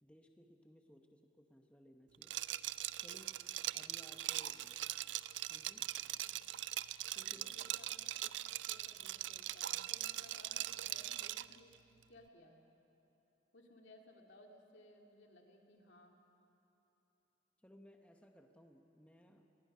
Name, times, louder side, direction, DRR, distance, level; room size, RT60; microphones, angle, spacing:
voice 1, 0.0-2.4 3.0-3.4 3.7-4.7 5.5-5.9 7.1-7.6 17.6-19.5, equal, 5° left, 4 dB, 0.9 m, -61 dB
Liquid, 2.2-11.6, right 14 dB, 85° right, 0.4 m, -41 dB
voice 2, 6.0-6.4 7.1-11.8 12.1-12.7 13.5-16.2, left 1 dB, 85° left, 1 dB, 2.3 m, -62 dB
25.5 x 20.0 x 5.5 m, 3.0 s
head